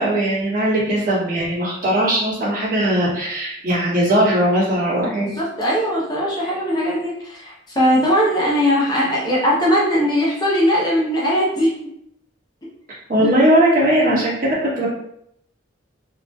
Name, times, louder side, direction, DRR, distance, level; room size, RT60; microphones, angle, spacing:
voice 1, 0.0-5.3 13.1-14.9, right 1 dB, 45° right, -7 dB, 1.4 m, -19 dB
voice 2, 5.0-11.8 13.2-13.3 14.0-14.2, equal, 20° left, -5 dB, 0.6 m, -20 dB
4.1 x 3.0 x 2.2 m, 0.75 s
head